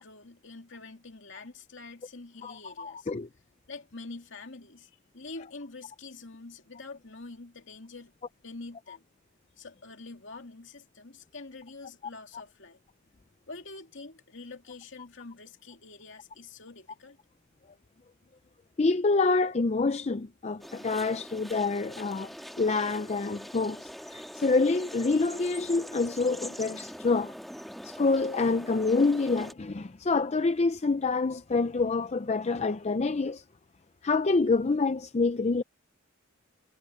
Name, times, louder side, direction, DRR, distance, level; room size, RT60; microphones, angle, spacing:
voice 1, 0.0-3.1 3.7-8.1 8.4-9.0 9.6-12.8 13.5-17.2, left 3 dB, 60° left, 2.8 m, -46 dB
voice 2, 2.4-3.3 18.8-27.3 27.8-33.4 34.0-35.6, left 3 dB, 30° left, 0.5 m, -27 dB
sound 1, 20.6-29.5, equal, ahead, 2.0 m, -43 dB
head